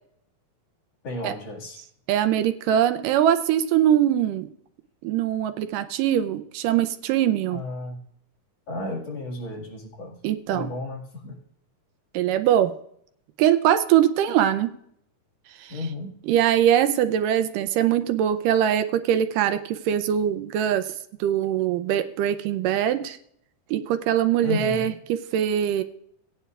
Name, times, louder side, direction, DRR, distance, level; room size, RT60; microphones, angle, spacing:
voice 1, 1.0-1.8 7.5-8.0 8.7-10.2 10.5-11.4 15.7-16.1 24.4-24.9, left 2 dB, 50° left, -3 dB, 3.0 m, -33 dB
voice 2, 2.1-4.5 5.0-7.6 10.2-10.7 12.1-12.7 13.4-14.7 15.6-15.7 16.3-20.9 21.2-23.2 23.7-25.8, right 10 dB, 80° right, 10 dB, 2.2 m, -22 dB
18.5 x 9.7 x 2.4 m, 0.68 s
omnidirectional pair, 3.9 m